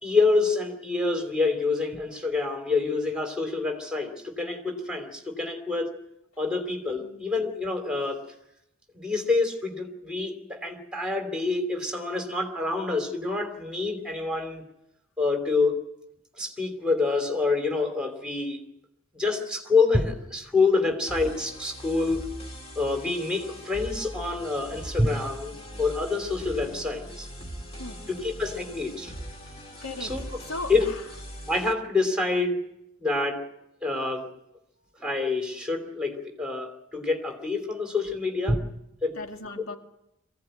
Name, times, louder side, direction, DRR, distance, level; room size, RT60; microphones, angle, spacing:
voice 1, 0.0-5.9 6.4-8.2 8.9-14.6 15.2-15.8 16.4-18.6 19.2-22.3 22.8-27.3 28.1-29.1 30.0-30.2 30.7-30.8 31.5-32.6 33.0-33.4 33.8-34.3 35.0-38.6 39.0-39.2, left 3 dB, 5° right, 4 dB, 3.0 m, -27 dB
sound 1, 21.1-31.7, equal, 30° left, 2.2 m, -41 dB
voice 2, 29.8-31.0 39.1-39.8, left 2 dB, 85° left, 4 dB, 2.0 m, -38 dB
23.5 x 16.5 x 9.1 m, 0.85 s
head